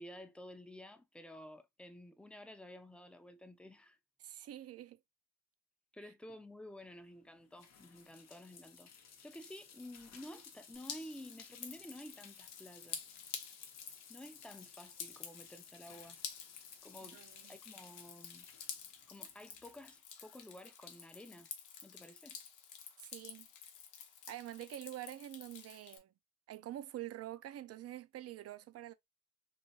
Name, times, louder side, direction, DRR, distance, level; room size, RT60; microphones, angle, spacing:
voice 1, 0.0-4.0 5.9-8.9 9.2-13.0 14.1-16.2 16.8-17.2 17.5-18.5 19.1-21.5 21.8-22.4, left 1 dB, 5° left, 0.5 m, -52 dB
voice 2, 4.2-5.0 17.0-17.5 23.0-23.5 24.3-26.1 26.5-28.9, right 13 dB, 55° right, 0.5 m, -46 dB
sound 1, 6.8-20.0, left 7 dB, 60° left, 0.7 m, -58 dB
Drip, 10.7-26.0, left 7 dB, 90° left, 0.8 m, -50 dB
3.1 x 2.6 x 2.7 m
cardioid pair, 90°, 30 cm